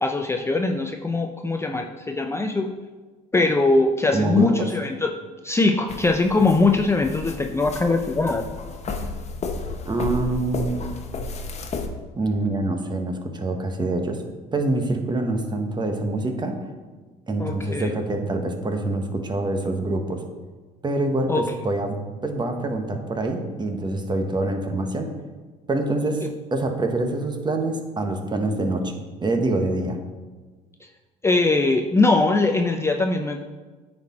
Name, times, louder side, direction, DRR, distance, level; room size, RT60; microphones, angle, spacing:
voice 1, 0.0-2.7 3.3-5.1 5.4-8.4 17.4-17.9 21.3-21.4 31.2-33.4, left 3 dB, 15° left, 3 dB, 0.6 m, -21 dB
voice 2, 4.1-4.7 9.8-11.0 12.2-14.2 14.5-16.6 17.3-20.2 20.8-22.0 22.2-25.1 25.7-26.2 26.5-30.0, right 2 dB, 25° right, 5 dB, 1.2 m, -25 dB
sound 1, 5.9-11.9, left 3 dB, 35° left, 1.0 m, -33 dB
9.4 x 4.4 x 4.3 m, 1.3 s
supercardioid pair, 80°, 18 cm